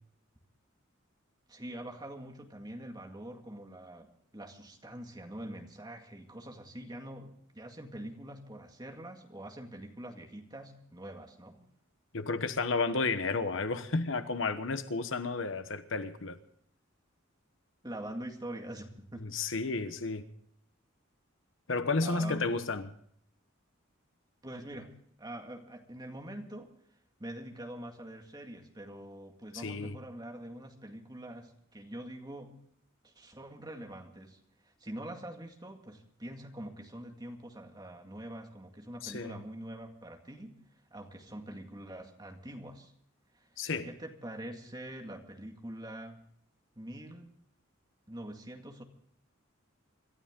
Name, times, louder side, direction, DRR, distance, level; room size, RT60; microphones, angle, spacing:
voice 1, 1.5-11.6 17.8-19.3 22.0-22.6 24.4-24.9 25.2-26.7 27.2-32.6 33.0-34.4 34.6-40.6 40.9-42.9 43.3-43.5 43.8-46.2 46.8-47.3 48.1-48.8, right 1 dB, 20° right, 2.0 m, -44 dB
voice 2, 12.1-16.4 19.1-20.2 21.7-22.9 29.5-30.0 39.0-39.4 43.6-43.9, left 3 dB, 60° left, 1.1 m, -32 dB
27.0 x 13.0 x 3.8 m
head